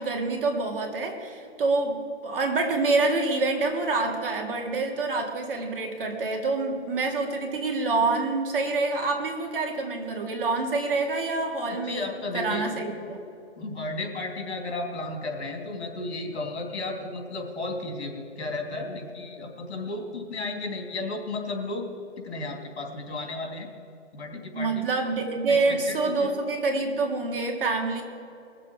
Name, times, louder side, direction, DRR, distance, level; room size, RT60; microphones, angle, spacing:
voice 1, 0.0-13.2 24.5-28.0, right 3 dB, 50° right, 2 dB, 2.2 m, -27 dB
voice 2, 11.7-12.7 13.6-21.9 22.2-23.7 24.1-24.9 25.5-25.6 25.9-26.3, left 2 dB, 65° left, 2 dB, 3.1 m, -33 dB
21.0 x 7.5 x 4.7 m, 2.7 s
hypercardioid pair, 165°, 35 cm